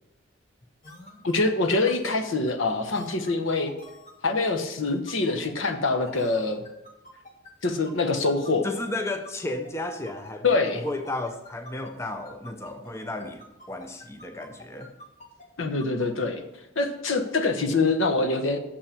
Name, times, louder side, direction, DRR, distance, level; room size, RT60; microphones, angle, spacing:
sound 1, 0.8-12.9 13.2-16.2, left 1 dB, 35° left, 1.6 m, -47 dB
voice 1, 1.2-3.7 4.2-6.6 7.6-8.7 10.4-10.8 15.6-16.4 16.8-18.6, left 3 dB, 80° left, 7 dB, 1.0 m, -25 dB
voice 2, 8.6-10.4 10.7-13.4 13.7-14.9, left 2 dB, 15° left, 6 dB, 0.6 m, -33 dB
6.8 x 5.7 x 6.9 m, 0.87 s
head